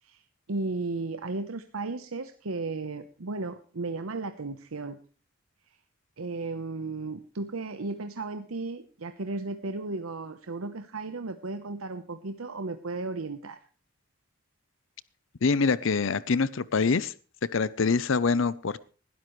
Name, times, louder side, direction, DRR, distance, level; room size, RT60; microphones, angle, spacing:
voice 1, 0.5-5.0 6.2-13.6, right 3 dB, 90° right, 9 dB, 0.9 m, -35 dB
voice 2, 15.4-17.1 17.5-18.8, left 4 dB, 65° left, 18 dB, 0.6 m, -25 dB
19.5 x 12.5 x 3.2 m, 0.38 s
head